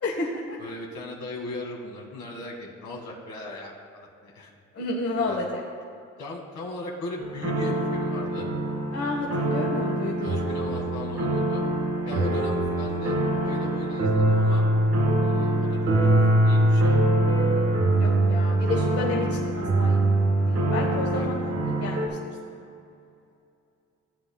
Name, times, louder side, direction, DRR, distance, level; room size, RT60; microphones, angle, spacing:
voice 1, 0.0-0.6 4.7-5.6 8.9-10.3 12.0-12.4 17.9-20.0 20.3-21.3 21.6-22.1 22.5-22.6, left 2 dB, 50° left, -2 dB, 1.3 m, -31 dB
voice 2, 0.6-4.5 5.3-5.4 6.2-8.5 10.2-11.6 12.1-14.7 15.2-15.8 16.1-17.1 21.1-21.3, left 2 dB, 70° left, -1 dB, 1.9 m, -38 dB
sound 1, 7.2-22.1, right 1 dB, 60° right, 2.0 m, -23 dB
15.5 x 8.5 x 2.3 m, 2.5 s
cardioid pair, 90°, 30 cm